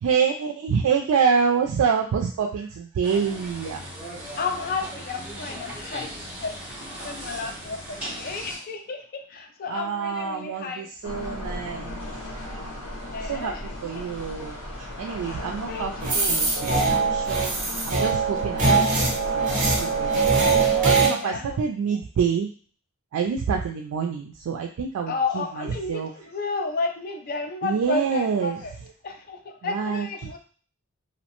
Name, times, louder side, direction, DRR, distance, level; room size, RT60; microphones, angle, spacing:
voice 1, 0.0-3.8 8.2-8.3 9.7-12.0 12.4-17.6 17.8-22.5 23.1-26.1 27.6-28.6 29.6-30.1, right 6 dB, 90° right, 1 dB, 0.3 m, -27 dB
sound 1, 3.0-8.6, equal, 5° right, 0.9 m, -37 dB
voice 2, 4.4-6.1 6.4-6.6 7.0-10.9 13.0-13.6 13.9-14.0 15.1-15.4 15.7-16.5 21.2-21.6 25.1-28.7 29.0-30.4, left 4 dB, 45° left, 4 dB, 0.4 m, -32 dB
sound 2, 11.0-20.9, left 1 dB, 80° left, 1.1 m, -35 dB
sound 3, 16.0-21.1, right 4 dB, 40° right, 0.7 m, -22 dB
2.7 x 2.1 x 2.9 m, 0.42 s
head